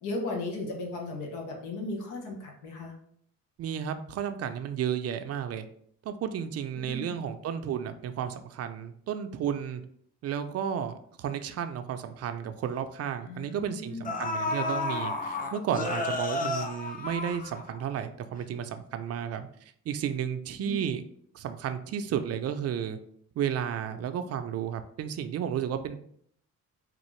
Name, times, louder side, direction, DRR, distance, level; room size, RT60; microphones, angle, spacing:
voice 1, 0.0-3.0 6.9-7.2 13.2-14.1 20.6-20.8, left 2 dB, 85° left, 1 dB, 0.8 m, -36 dB
voice 2, 3.6-5.7 6.0-9.8 10.2-19.5 19.9-21.0 21.3-23.0 23.4-26.0, right 8 dB, 55° right, 9 dB, 0.4 m, -32 dB
sound 1, 11.9-12.0 12.4-12.5 13.6-13.7 14.0-18.0 18.3-18.4, left 2 dB, 30° left, 0.5 m, -32 dB
3.6 x 2.4 x 3.1 m, 0.64 s
cardioid pair, 90°, 30 cm